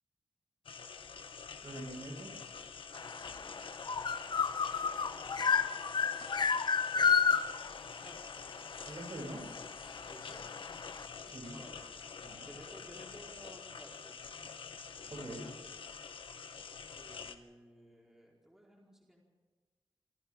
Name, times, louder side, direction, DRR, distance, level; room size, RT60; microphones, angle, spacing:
sound 1, 0.6-17.3, left 5 dB, 85° left, 1.2 m, -47 dB
voice 1, 1.6-2.3 8.8-9.4 11.3-11.6 12.2-12.5 15.0-15.5, right 1 dB, 55° right, 0 dB, 7.8 m, -44 dB
sound 2, 3.0-11.1, left 6 dB, 55° left, 0.8 m, -32 dB
voice 2, 3.2-3.6 8.0-8.3 10.0-10.4 11.4-11.8 12.4-14.3 16.9-19.2, right 1 dB, 5° right, -3 dB, 4.5 m, -56 dB
27.5 x 24.5 x 3.8 m, 1.4 s
wide cardioid pair, 110°, 9 cm